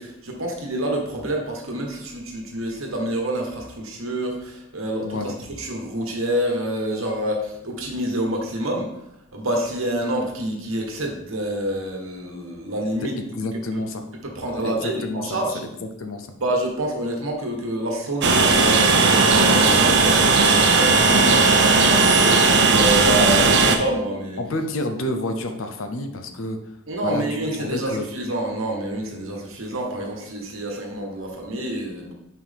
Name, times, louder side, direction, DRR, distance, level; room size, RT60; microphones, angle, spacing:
voice 1, 0.0-5.3 5.6-8.9 9.3-13.2 13.7-13.8 14.3-15.6 16.4-20.9 21.2-24.4 26.9-32.1, right 1 dB, 70° right, 1 dB, 1.3 m, -27 dB
voice 2, 5.0-5.3 13.0-14.0 14.6-16.3 20.9-21.4 24.4-26.6 27.0-27.3 27.5-28.1, left 1 dB, 65° left, 6 dB, 0.7 m, -29 dB
Train, 18.2-23.8, right 3 dB, 55° right, 0.6 m, -16 dB
6.0 x 4.7 x 3.5 m, 0.84 s
head